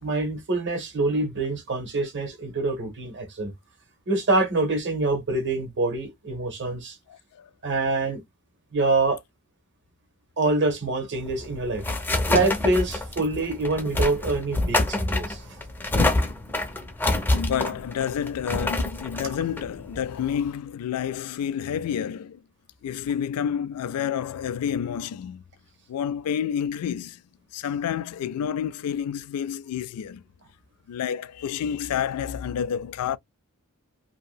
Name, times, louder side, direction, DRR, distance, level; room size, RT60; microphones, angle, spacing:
voice 1, 0.0-3.5 4.1-7.0 7.6-8.2 8.7-9.2 10.4-11.8 12.3-15.5, right 2 dB, 55° right, 1.0 m, -25 dB
voice 2, 7.1-7.5 17.3-22.4 22.8-25.4 25.9-27.2 27.5-30.2 30.9-33.2, left 8 dB, 75° left, 0.3 m, -29 dB
sound 1, 11.2-20.5, left 2 dB, 10° left, 0.6 m, -27 dB
2.8 x 2.6 x 2.2 m
head